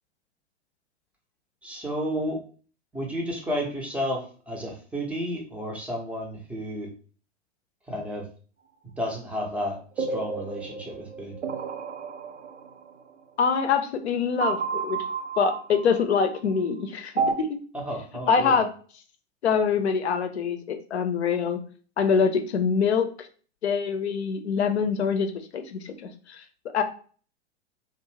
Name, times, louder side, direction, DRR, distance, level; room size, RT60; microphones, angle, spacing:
voice 1, 1.6-2.4 2.9-6.9 7.9-8.3 9.0-11.3 17.7-18.6, equal, 5° right, 0 dB, 0.5 m, -32 dB
sound 1, 10.0-13.0 14.4-16.4 17.2-17.3, right 5 dB, 85° right, 0.5 m, -31 dB
voice 2, 13.4-15.0 15.4-17.6 18.3-18.7 19.4-21.6 22.0-23.3 23.6-26.4 26.7-26.8, left 6 dB, 70° left, 7 dB, 0.6 m, -25 dB
2.5 x 2.0 x 3.1 m, 0.41 s
figure-of-eight pair, 95°, 35 cm